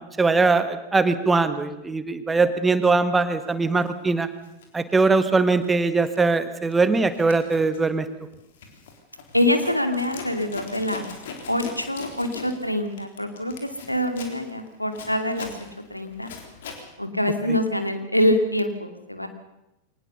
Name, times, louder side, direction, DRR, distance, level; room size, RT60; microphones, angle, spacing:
voice 1, 0.0-4.3 4.7-8.0 17.5-17.6, right 3 dB, 10° right, 11 dB, 1.7 m, -21 dB
Zipper (clothing), 3.7-3.9 4.4-5.8 6.1-6.4 6.7-16.9, left 5 dB, 60° left, 3.9 m, -41 dB
voice 2, 9.3-11.1 11.5-15.5 15.9-16.3 17.0-19.3, left 1 dB, 90° left, 7 dB, 2.4 m, -25 dB
23.5 x 19.0 x 7.0 m, 0.89 s
figure-of-eight pair, 90°, 0 cm